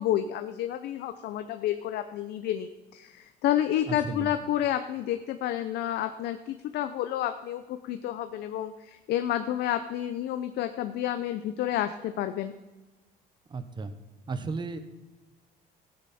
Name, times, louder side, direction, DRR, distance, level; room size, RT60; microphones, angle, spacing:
voice 1, 0.0-12.5, left 11 dB, 75° left, 9 dB, 0.7 m, -30 dB
voice 2, 3.9-4.3 13.5-13.9 14.3-14.8, right 4 dB, 25° right, 10 dB, 1.0 m, -34 dB
15.5 x 9.7 x 4.3 m, 1.1 s
cardioid pair, 110°, 17 cm